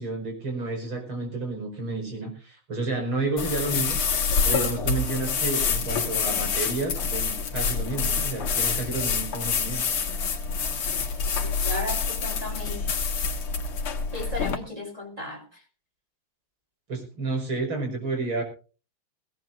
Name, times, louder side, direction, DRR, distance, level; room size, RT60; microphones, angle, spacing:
voice 1, 0.0-4.0 4.4-9.8 16.9-18.4, right 3 dB, 75° right, 5.9 m, -30 dB
sound 1, 3.4-14.6, left 5 dB, 85° left, 2.7 m, -27 dB
voice 2, 11.4-12.8 14.1-15.6, left 1 dB, 15° right, 3.1 m, -35 dB
20.5 x 16.5 x 2.5 m
omnidirectional pair, 2.4 m